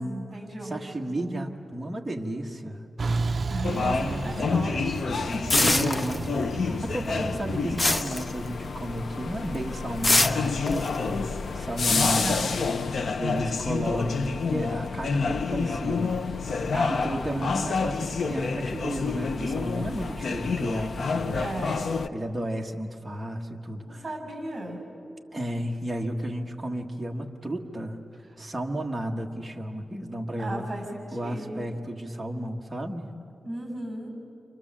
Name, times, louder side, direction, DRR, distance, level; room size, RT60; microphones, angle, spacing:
voice 1, 0.0-1.4 3.5-5.0 12.1-12.8 14.6-14.7 16.7-17.7 21.3-21.9 23.8-24.8 30.4-31.6 33.4-34.1, right 1 dB, 30° right, 3 dB, 6.9 m, -36 dB
voice 2, 0.6-2.9 3.7-4.6 5.3-11.2 11.5-12.6 13.2-16.2 16.9-21.5 22.1-24.0 25.3-28.0 28.4-30.7 31.1-33.1, right 1 dB, 10° right, 0 dB, 1.5 m, -33 dB
Truck, 3.0-8.0, right 3 dB, 45° right, 0.5 m, -33 dB
sound 1, 3.6-22.1, left 5 dB, 65° left, 0.8 m, -29 dB
sound 2, 5.5-6.6 6.9-8.9 9.3-9.6 10.0-11.9, left 2 dB, 30° left, 1.1 m, -25 dB
30.0 x 26.5 x 7.5 m, 2.6 s
wide cardioid pair, 140°, 0 cm